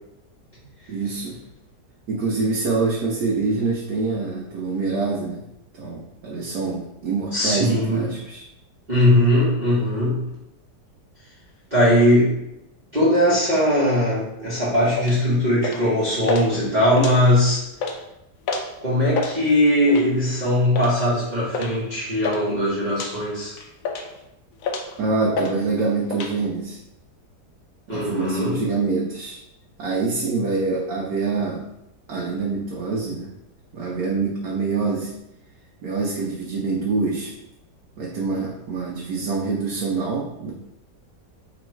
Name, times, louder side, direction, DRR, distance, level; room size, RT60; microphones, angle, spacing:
voice 1, 0.9-1.4 2.1-5.4 5.7-8.4 25.0-26.8 27.9-29.4 29.8-31.7 32.1-33.3 33.7-35.1 35.8-37.3 38.0-40.5, right 4 dB, 70° right, -3 dB, 1.3 m, -25 dB
voice 2, 7.3-8.1 8.9-10.3 11.7-12.4 12.9-17.6 18.8-23.5 27.9-28.6, left 1 dB, 30° right, -10 dB, 1.2 m, -20 dB
sound 1, 15.0-15.2 15.6-15.9 16.2-16.5 16.9-17.4 17.7-18.0 18.5-18.7 19.0-19.3 19.9-20.2 20.7-20.9 21.5-21.7 22.0-22.4 22.9-23.1 23.6-24.2 24.6-25.0 25.4-25.5 25.8-26.3, left 3 dB, 70° left, 0.9 m, -28 dB
3.6 x 3.0 x 4.4 m, 0.86 s
omnidirectional pair, 1.8 m